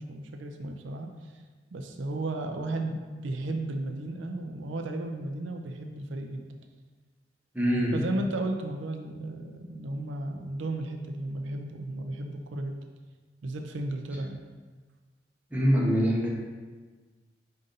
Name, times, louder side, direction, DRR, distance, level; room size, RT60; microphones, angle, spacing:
voice 1, 0.0-1.4 1.7-6.5 7.9-12.8 13.4-14.4, right 2 dB, 85° right, 4 dB, 0.4 m, -34 dB
voice 2, 7.5-7.9 15.5-16.3, equal, 10° right, -4 dB, 0.8 m, -24 dB
5.4 x 2.6 x 3.8 m, 1.4 s
head